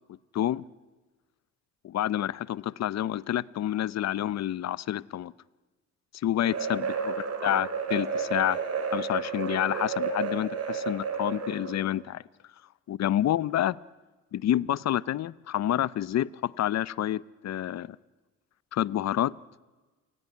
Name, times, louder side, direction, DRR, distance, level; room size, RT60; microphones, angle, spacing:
voice 1, 0.3-0.6 1.8-5.3 6.2-7.1 7.4-8.6 8.9-12.2 12.9-13.8 14.3-18.0 18.7-19.4, left 12 dB, 60° left, 21 dB, 0.8 m, -28 dB
sound 1, 6.4-11.9, right 5 dB, 55° right, 4.0 m, -31 dB
28.5 x 16.5 x 9.6 m, 1.2 s
cardioid pair, 90°, 30 cm